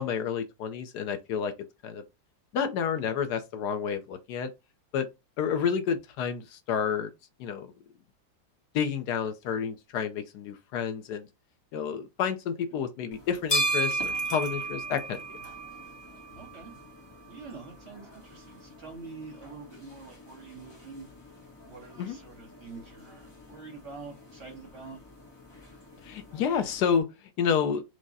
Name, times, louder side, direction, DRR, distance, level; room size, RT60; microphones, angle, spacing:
voice 1, 0.0-1.5 1.8-2.0 2.5-4.5 4.9-5.1 5.4-7.1 7.4-7.7 8.7-11.3 11.7-15.2 22.0-22.2 26.0-27.1 27.4-27.8, left 7 dB, 70° left, 1.1 m, -29 dB
sound 1, 13.1-27.0, right 2 dB, 20° left, 0.8 m, -37 dB
voice 2, 16.1-16.8 17.3-21.1 21.7-25.0, right 4 dB, 45° right, 1.2 m, -46 dB
4.8 x 2.1 x 3.9 m
omnidirectional pair, 2.0 m